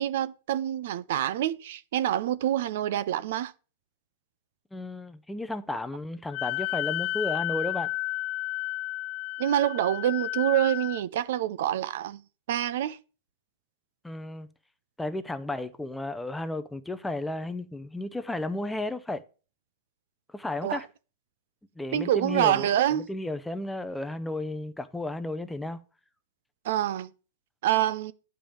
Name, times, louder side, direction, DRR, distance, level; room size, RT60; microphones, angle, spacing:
voice 1, 0.0-3.5 9.4-12.2 12.5-13.0 20.6-20.8 21.9-23.1 26.6-27.1 27.6-28.1, right 12 dB, 65° right, 0.5 m, -26 dB
voice 2, 4.7-7.9 14.0-14.5 15.0-19.2 20.3-20.9 21.8-25.8, left 2 dB, 5° left, 0.6 m, -33 dB
Wind instrument woodwind instrument, 6.3-11.0, left 17 dB, 45° left, 0.8 m, -32 dB
8.9 x 5.2 x 7.1 m
hypercardioid pair, 140°, 0 cm